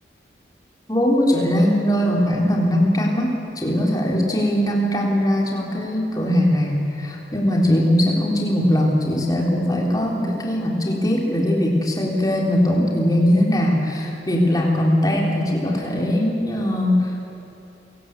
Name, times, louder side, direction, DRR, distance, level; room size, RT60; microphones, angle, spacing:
voice 1, 0.9-17.1, equal, 20° left, -1 dB, 3.5 m, -20 dB
29.0 x 18.0 x 8.3 m, 3.0 s
head